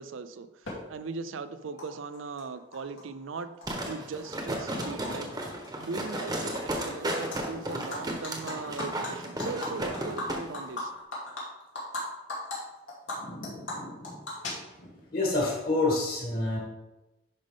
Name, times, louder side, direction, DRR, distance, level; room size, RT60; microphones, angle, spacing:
voice 1, 0.0-3.5 3.9-5.5 5.8-10.9, right 4 dB, 90° right, 11 dB, 0.5 m, -39 dB
Animal, 0.7-0.8 1.8-1.9 2.1-3.0 3.4-5.1 5.4-5.7 6.0-6.8 7.1-7.4 7.7-12.0 12.3-12.6 12.9-15.0, left 2 dB, 85° left, 2.5 m, -38 dB
sound 1, 3.7-10.4 10.8-10.9, right 1 dB, 20° right, 1.0 m, -34 dB
voice 2, 15.1-16.6, left 2 dB, 50° left, -3 dB, 2.8 m, -27 dB
10.5 x 5.3 x 3.6 m, 1.0 s
head